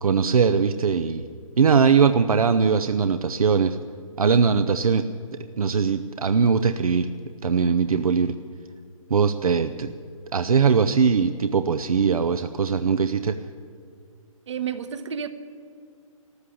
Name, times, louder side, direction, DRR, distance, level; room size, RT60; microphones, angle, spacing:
voice 1, 0.0-1.3 1.6-3.8 4.2-5.0 5.6-7.1 7.4-8.4 9.1-9.9 10.3-13.4, right 6 dB, 80° right, 9 dB, 0.7 m, -20 dB
voice 2, 14.5-15.3, right 8 dB, 55° right, 12 dB, 1.1 m, -30 dB
13.5 x 13.0 x 8.4 m, 2.1 s
hypercardioid pair, 150°, 18 cm